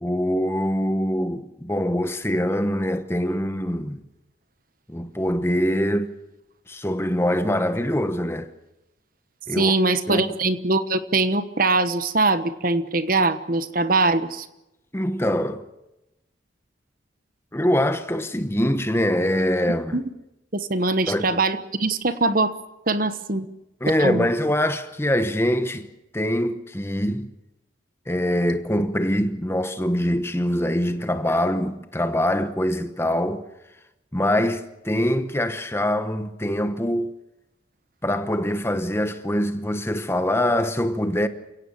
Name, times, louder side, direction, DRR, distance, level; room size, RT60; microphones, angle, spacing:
voice 1, 0.0-4.0 4.9-6.1 6.7-8.5 9.5-9.7 10.1-10.3 14.9-15.6 17.5-20.0 21.1-21.4 23.8-25.9 26.1-27.3 28.1-33.4 34.1-37.1 38.0-41.3, equal, 15° left, 1.0 m, -24 dB
voice 2, 9.5-14.5 19.9-20.0 20.5-22.5 22.9-23.5 24.0-24.3, right 3 dB, 45° right, 1.2 m, -22 dB
29.0 x 17.0 x 7.4 m
head